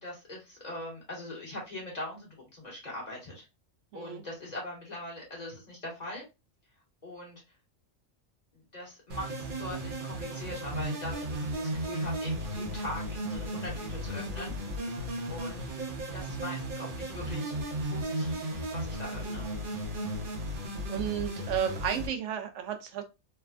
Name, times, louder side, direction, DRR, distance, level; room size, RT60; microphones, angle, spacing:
voice 1, 0.0-3.5 3.9-6.2 7.0-7.4 8.7-14.5 15.3-15.6 16.1-17.5 17.8-19.4, left 1 dB, 35° left, -3 dB, 1.3 m, -41 dB
voice 2, 3.9-4.2 19.2-19.3 20.9-23.0, right 9 dB, 85° right, 6 dB, 0.9 m, -33 dB
sound 1, 9.1-22.1, right 1 dB, 50° right, 0.9 m, -35 dB
3.2 x 2.2 x 2.3 m, 0.25 s
omnidirectional pair, 1.2 m